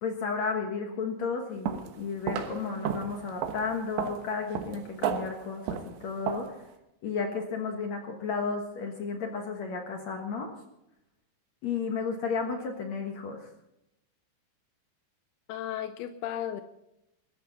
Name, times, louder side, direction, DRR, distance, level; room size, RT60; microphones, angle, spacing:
voice 1, 0.0-6.6 7.0-10.5 11.6-13.5, left 5 dB, 65° left, 3 dB, 1.7 m, -33 dB
sound 1, 1.7-2.0 2.3-6.6, right 8 dB, 75° right, 3.4 m, -33 dB
voice 2, 15.5-16.6, left 11 dB, 85° left, 10 dB, 2.2 m, -34 dB
22.0 x 13.5 x 4.1 m, 0.86 s
omnidirectional pair, 5.3 m